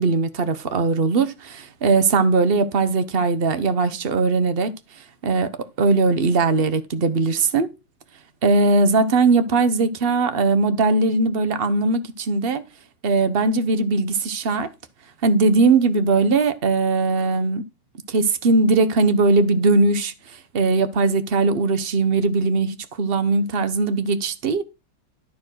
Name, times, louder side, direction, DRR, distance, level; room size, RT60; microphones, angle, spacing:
voice 1, 0.0-4.7 5.2-5.5 5.8-7.7 8.4-12.6 13.0-14.7 15.2-17.6 18.1-24.6, right 3 dB, 65° right, 0.5 m, -20 dB
13.0 x 4.6 x 6.2 m
omnidirectional pair, 2.4 m